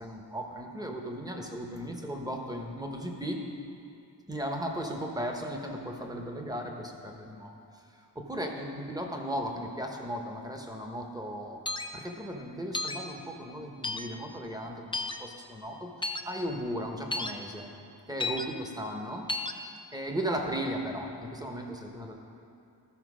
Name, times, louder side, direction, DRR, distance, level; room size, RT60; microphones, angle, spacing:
voice 1, 0.0-3.4 4.3-7.5 8.1-11.6 11.9-15.9 16.2-17.7 18.1-19.3 19.9-22.1, equal, 10° right, 2 dB, 1.0 m, -36 dB
sound 1, 11.7-11.9 12.7-13.0 13.8-14.1 14.9-15.2 16.0-16.2 17.1-17.3 18.2-18.4 19.3-19.5, left 2 dB, 10° left, 0.4 m, -32 dB
13.5 x 4.5 x 6.2 m, 2.7 s
wide cardioid pair, 100°, 44 cm